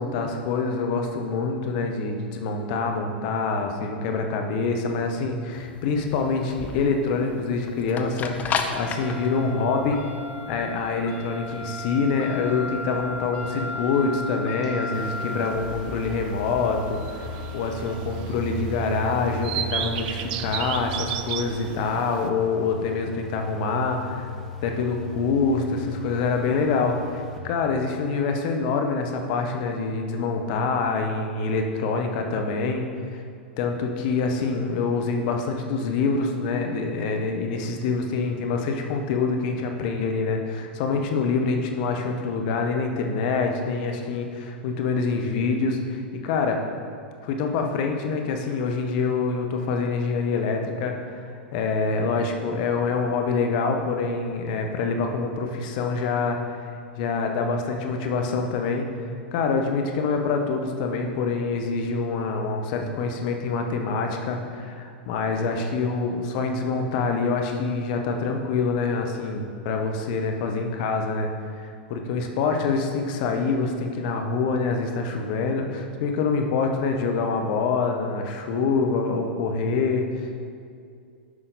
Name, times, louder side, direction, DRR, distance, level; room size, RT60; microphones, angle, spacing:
voice 1, 0.0-10.0 10.5-24.3 24.6-33.2 33.6-46.6 47.2-56.6 57.0-58.9 59.3-71.3 71.9-80.4, left 4 dB, 50° left, 4 dB, 1.1 m, -26 dB
sound 1, 5.5-19.7, left 4 dB, 25° left, 0.7 m, -35 dB
sound 2, 13.3-27.4, left 2 dB, 5° left, 1.4 m, -39 dB
sound 3, 14.9-22.3, right 10 dB, 50° right, 0.5 m, -35 dB
9.8 x 5.7 x 4.0 m, 2.3 s
figure-of-eight pair, 95°, 6 cm